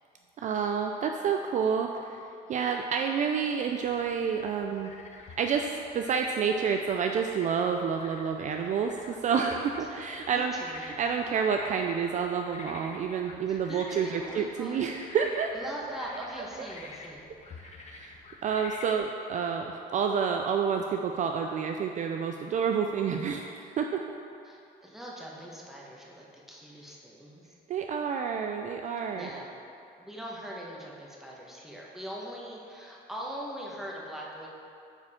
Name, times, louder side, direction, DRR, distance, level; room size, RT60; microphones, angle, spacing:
voice 1, 0.4-2.2 2.5-4.9 5.4-10.5 10.8-15.5 17.6-24.0 27.7-29.3, right 6 dB, 45° right, 3 dB, 0.4 m, -29 dB
sound 1, 3.8-19.0, left 3 dB, 40° left, 0.6 m, -48 dB
voice 2, 10.3-11.0 13.5-14.8 15.5-17.3 24.4-27.5 29.1-29.5 30.0-34.5, equal, ahead, -4 dB, 1.3 m, -42 dB
8.8 x 4.8 x 3.7 m, 2.5 s
cardioid pair, 110°, 17 cm